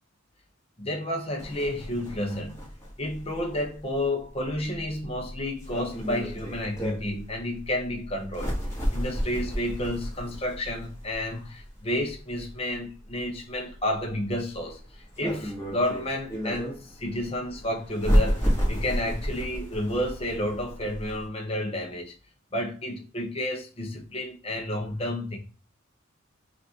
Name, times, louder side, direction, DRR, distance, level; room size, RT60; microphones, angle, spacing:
voice 1, 0.8-2.6 3.0-8.5 8.9-22.2 22.5-25.4, left 1 dB, 30° left, 0.8 m, -31 dB
sound 1, 1.4-21.2, equal, 15° left, 1.5 m, -32 dB
5.9 x 2.6 x 2.9 m
head